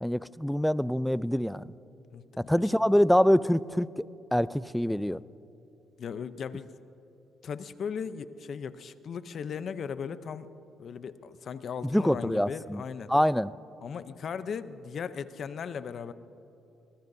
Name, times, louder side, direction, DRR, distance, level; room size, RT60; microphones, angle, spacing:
voice 1, 0.0-1.7 2.4-4.0 4.3-5.2 11.8-12.8 13.1-13.5, equal, 5° left, 18 dB, 0.3 m, -25 dB
voice 2, 2.1-2.7 6.0-6.7 7.4-10.5 10.8-13.1 13.8-16.1, left 6 dB, 55° left, 13 dB, 0.6 m, -37 dB
24.5 x 20.0 x 2.7 m, 3.0 s
cardioid pair, 90°, 0 cm